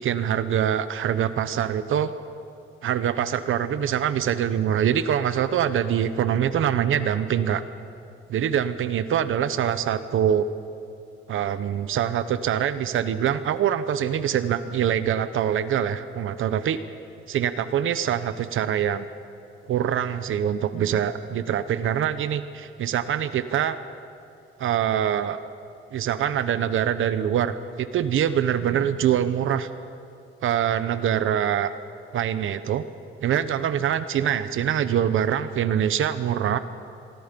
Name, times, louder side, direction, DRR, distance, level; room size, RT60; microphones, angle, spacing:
voice 1, 0.0-2.1 2.8-7.6 8.3-10.5 11.3-16.8 17.3-19.1 19.6-23.8 24.6-25.4 25.9-29.7 30.4-31.7 32.1-32.8 33.2-36.6, right 9 dB, 70° right, 12 dB, 0.9 m, -24 dB
27.0 x 23.0 x 5.3 m, 2.6 s
wide cardioid pair, 175°, 21 cm